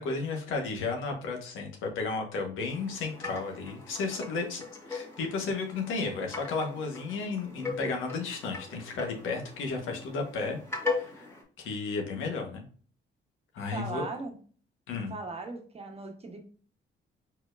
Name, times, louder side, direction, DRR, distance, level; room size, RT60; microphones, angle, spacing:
voice 1, 0.0-4.6 4.9-11.3 11.6-12.6 13.5-14.1 14.9-15.1, left 4 dB, 85° left, 2 dB, 1.3 m, -33 dB
sound 1, 2.7-11.4, left 4 dB, 10° left, 1.9 m, -39 dB
voice 2, 13.7-14.4 14.9-16.4, right 3 dB, 30° right, 4 dB, 1.1 m, -38 dB
4.4 x 4.3 x 2.5 m, 0.43 s
cardioid pair, 90°, 20 cm